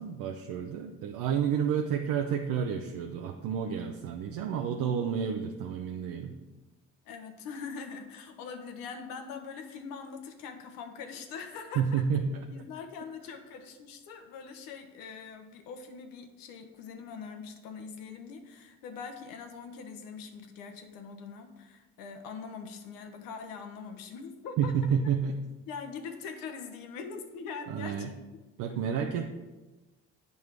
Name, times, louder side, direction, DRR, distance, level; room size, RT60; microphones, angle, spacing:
voice 1, 0.0-6.3 11.8-12.4 24.6-25.3 27.7-28.1 28.6-29.3, right 7 dB, 80° right, 3 dB, 0.7 m, -30 dB
voice 2, 7.0-12.0 12.5-24.7 25.7-28.1, left 5 dB, 90° left, 6 dB, 1.0 m, -42 dB
8.0 x 5.4 x 4.6 m, 1.1 s
cardioid pair, 80°, 33 cm